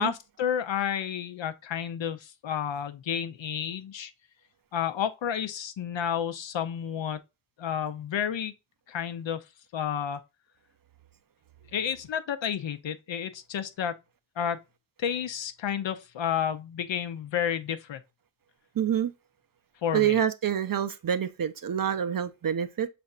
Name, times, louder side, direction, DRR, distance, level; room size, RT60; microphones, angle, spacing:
voice 1, 0.0-4.1 4.7-7.2 7.6-8.5 8.9-9.4 9.7-10.2 11.7-13.9 14.4-14.6 15.0-18.0 19.8-20.1, left 8 dB, 65° left, 0.7 m, -31 dB
voice 2, 18.8-19.1 19.9-22.9, right 9 dB, 45° right, 0.5 m, -27 dB
5.4 x 3.4 x 2.4 m
cardioid pair, 55°, 49 cm